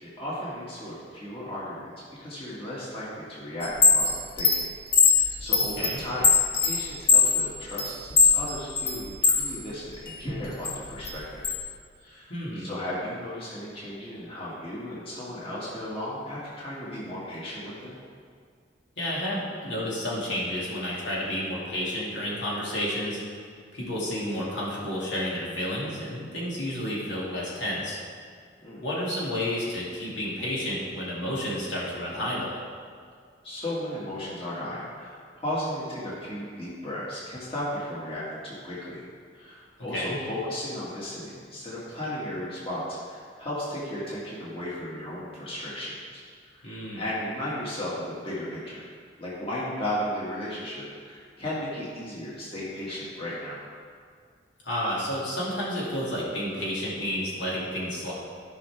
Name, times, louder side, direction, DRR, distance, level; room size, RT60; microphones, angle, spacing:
voice 1, 0.0-1.9 2.2-4.1 4.4-4.6 5.1-6.3 6.6-11.4 12.0-18.0 28.6-28.8 33.4-39.0 39.4-46.7 46.9-48.9 49.2-53.6, left 1 dB, 30° left, -7 dB, 2.0 m, -35 dB
Chime, 3.6-9.5 9.9-11.6, left 5 dB, 60° left, 1.2 m, -22 dB
voice 2, 12.3-12.7 19.0-23.2 23.7-28.0 28.8-32.5 39.9-40.2 46.6-47.0 54.6-58.1, equal, 75° left, -6 dB, 2.6 m, -31 dB
14.5 x 5.8 x 3.5 m, 2.1 s
head